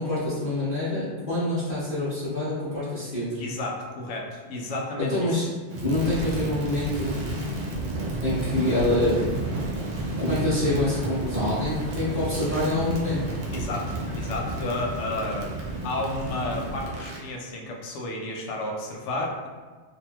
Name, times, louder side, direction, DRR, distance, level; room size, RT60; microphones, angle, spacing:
voice 1, 0.0-3.4 5.0-5.4 5.8-7.1 8.2-9.2 10.2-13.2, left 1 dB, 50° left, -12 dB, 1.0 m, -26 dB
voice 2, 3.4-5.5 13.5-19.5, left 2 dB, 90° left, 0 dB, 0.9 m, -32 dB
Crackle, 5.7-17.3, right 2 dB, 75° right, 0.9 m, -31 dB
2.8 x 2.7 x 2.2 m, 1.4 s
omnidirectional pair, 1.2 m